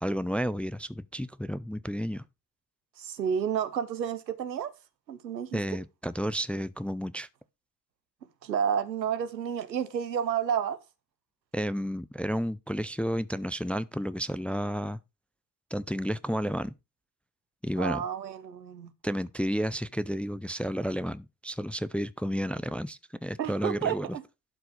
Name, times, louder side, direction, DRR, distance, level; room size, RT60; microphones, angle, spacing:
voice 1, 0.0-2.2 5.5-7.3 11.5-15.0 15.7-16.7 17.6-18.0 19.0-24.1, equal, 5° left, 0.4 m, -31 dB
voice 2, 3.0-4.7 5.1-5.6 8.4-10.8 17.8-18.9 23.4-24.2, right 8 dB, 90° right, 0.8 m, -30 dB
11.5 x 4.6 x 4.9 m
figure-of-eight pair, 45°, 49 cm